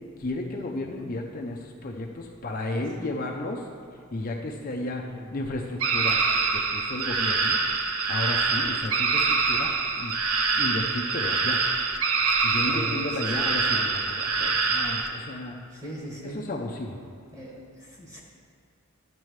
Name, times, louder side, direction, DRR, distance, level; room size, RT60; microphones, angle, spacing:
voice 1, 0.2-3.6 4.1-6.2 6.7-7.6 8.1-9.2 9.5-10.1 10.5-11.6 12.4-15.6 16.2-17.0, left 2 dB, 40° left, 0 dB, 0.5 m, -33 dB
sound 1, 5.8-15.1, right 4 dB, 75° right, 0.7 m, -25 dB
voice 2, 15.7-16.4 17.3-18.2, right 1 dB, 15° right, -4 dB, 1.5 m, -39 dB
12.0 x 7.5 x 3.2 m, 2.3 s
head